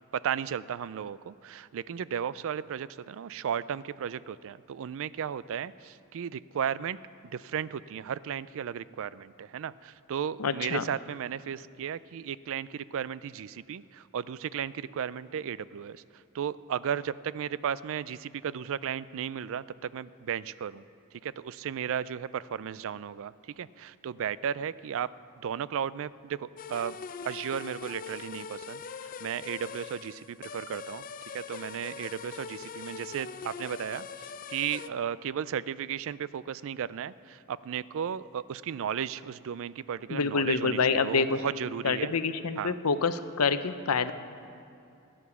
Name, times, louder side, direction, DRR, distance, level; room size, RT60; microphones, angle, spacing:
voice 1, 0.1-7.0 7.2-16.0 16.3-20.8 21.1-25.1 25.4-27.0 27.2-31.0 31.3-42.1 42.6-42.7, right 8 dB, 65° right, 18 dB, 0.4 m, -35 dB
voice 2, 10.4-10.8 40.1-41.4 41.8-44.1, left 5 dB, 85° left, 11 dB, 0.7 m, -27 dB
sound 1, 26.6-34.9, left 6 dB, 40° left, 0.4 m, -42 dB
15.5 x 10.0 x 7.0 m, 2.6 s
head